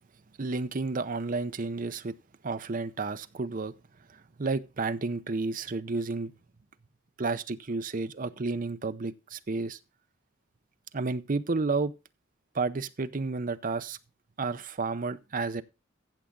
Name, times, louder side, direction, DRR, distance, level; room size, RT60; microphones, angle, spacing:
voice 1, 0.4-2.1 2.4-3.7 4.1-6.3 7.2-9.8 10.9-11.9 12.5-14.0 14.4-15.6, right 3 dB, 40° right, 0.6 m, -31 dB
15.0 x 7.1 x 3.7 m
head